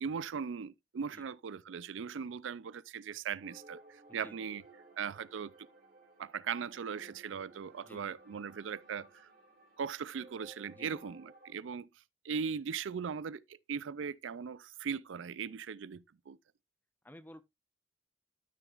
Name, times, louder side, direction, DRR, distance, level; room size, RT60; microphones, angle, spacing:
voice 1, 0.0-4.6 5.0-5.5 6.2-9.3 9.8-11.9 12.2-13.4 13.7-16.4, right 6 dB, 85° right, 0.4 m, -39 dB
sound 1, 3.4-11.5, right 2 dB, 50° right, 3.0 m, -58 dB
voice 2, 4.1-4.5 7.8-8.2 10.7-11.1 17.0-17.4, left 1 dB, 10° left, 0.7 m, -53 dB
13.0 x 6.1 x 2.4 m
head